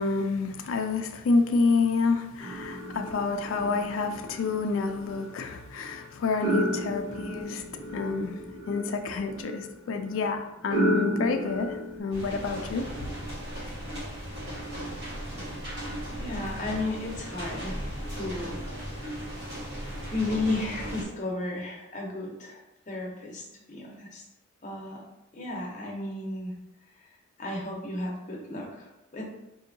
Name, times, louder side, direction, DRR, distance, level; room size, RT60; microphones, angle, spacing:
voice 1, 0.0-7.6 7.9-8.4 8.7-12.9, left 4 dB, 70° left, 5 dB, 0.3 m, -28 dB
sound 1, 2.4-12.0, equal, 15° right, 1.4 m, -33 dB
sound 2, 12.1-21.0, equal, 50° right, 1.3 m, -37 dB
voice 2, 16.2-17.8 18.2-18.6 20.1-22.6 22.9-24.2 24.6-25.0 25.3-26.5 27.4-29.2, left 2 dB, 35° left, -2 dB, 0.8 m, -33 dB
4.3 x 2.7 x 2.6 m, 0.88 s
head